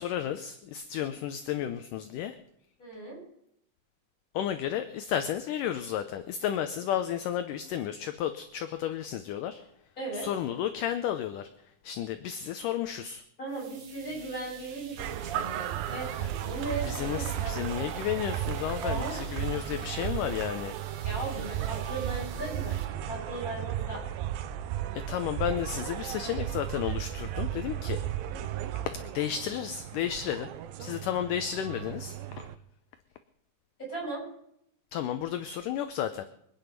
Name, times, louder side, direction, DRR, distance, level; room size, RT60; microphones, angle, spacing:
voice 1, 0.0-2.4 4.3-9.6 10.1-13.2 16.9-20.7 24.9-28.0 28.8-30.5 30.8-32.5 34.9-36.3, left 10 dB, 75° left, 9 dB, 2.1 m, -32 dB
voice 2, 2.8-3.2 10.0-10.3 13.4-17.9 18.8-19.2 21.0-24.0 33.8-34.2, right 2 dB, 20° left, -4 dB, 6.5 m, -37 dB
sound 1, 13.5-22.9, right 5 dB, 60° right, 3.0 m, -49 dB
sound 2, 15.0-32.6, right 12 dB, 75° right, 2.3 m, -35 dB
25.0 x 9.7 x 5.3 m, 0.75 s
omnidirectional pair, 4.3 m